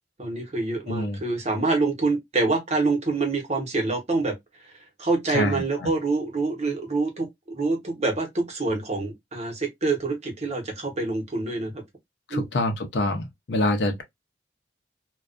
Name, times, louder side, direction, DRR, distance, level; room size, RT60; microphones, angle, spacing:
voice 1, 0.2-4.7 5.0-11.8 12.3-12.4, right 3 dB, 40° right, 0.9 m, -26 dB
voice 2, 0.9-1.2 5.3-5.9 12.3-14.0, left 2 dB, 75° left, 0.6 m, -26 dB
2.3 x 2.2 x 2.4 m
head